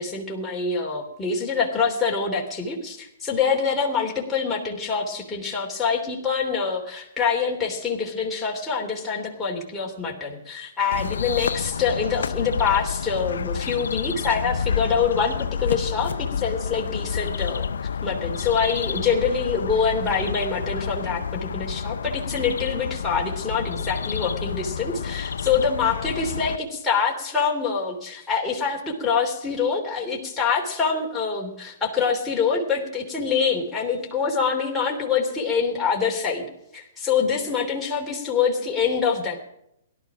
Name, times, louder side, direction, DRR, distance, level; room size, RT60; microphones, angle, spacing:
voice 1, 0.0-17.7 18.0-36.4 36.7-39.4, left 5 dB, 10° left, -3 dB, 3.1 m, -25 dB
sound 1, 10.9-26.6, left 6 dB, 80° left, 0.5 m, -29 dB
17.0 x 12.0 x 5.0 m, 0.78 s
hypercardioid pair, 125°, 0 cm